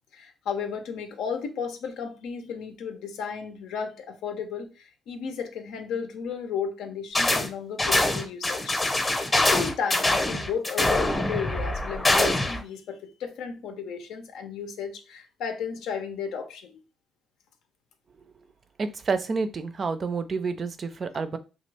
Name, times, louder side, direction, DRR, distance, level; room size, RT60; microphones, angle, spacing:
voice 1, 0.1-16.8, left 6 dB, 85° left, 0.6 m, -34 dB
sound 1, 7.1-7.5 7.8-12.6, left 2 dB, 20° left, 0.7 m, -24 dB
voice 2, 18.8-21.4, right 4 dB, 45° right, 0.4 m, -29 dB
3.0 x 2.3 x 3.3 m
cardioid pair, 90°, 0 cm